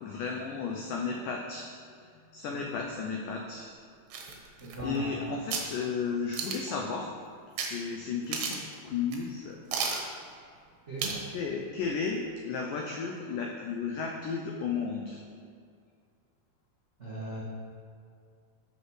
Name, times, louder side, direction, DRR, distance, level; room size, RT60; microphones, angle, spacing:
voice 1, 0.0-1.7 2.0-3.7 4.8-7.1 7.6-9.6 11.3-15.2, left 5 dB, 85° left, 1 dB, 1.8 m, -34 dB
sound 1, 4.1-5.1 5.5-5.7 6.3-6.8 7.6-7.7 8.0-8.1 8.3-8.7 9.1-9.2 9.7-10.1 11.0-11.3 11.6-11.7, right 5 dB, 85° right, 3.5 m, -33 dB
voice 2, 4.6-5.2 10.9-11.2 17.0-17.4, right 1 dB, 55° right, -7 dB, 0.7 m, -38 dB
12.5 x 6.6 x 4.9 m, 2.3 s
omnidirectional pair, 4.7 m